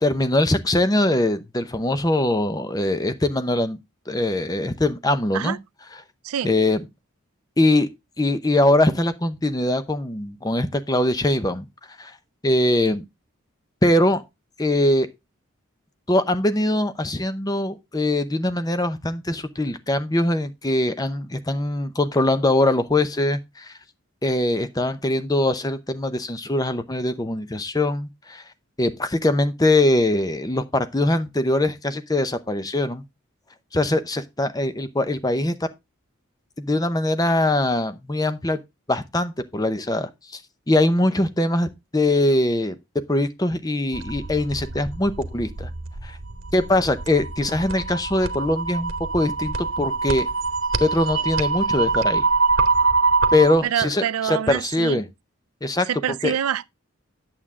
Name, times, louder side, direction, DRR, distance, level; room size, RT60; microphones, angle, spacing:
voice 1, 0.0-3.8 4.1-5.6 6.4-6.8 7.6-7.9 8.2-11.7 12.0-12.1 12.4-13.0 13.8-14.2 14.6-15.1 16.1-23.7 24.2-28.4 28.8-33.0 33.7-35.6 36.6-38.6 38.9-40.4 40.7-42.7 43.1-45.7 46.0-46.2 46.5-50.3 50.8-52.3 53.3-55.0 55.6-55.9 56.2-56.3, left 1 dB, 15° left, 0.7 m, -22 dB
sound 1, 43.9-53.6, right 4 dB, 70° right, 1.0 m, -24 dB
voice 2, 53.6-55.0 55.9-56.7, right 9 dB, 90° right, 0.4 m, -26 dB
9.0 x 7.4 x 3.6 m
head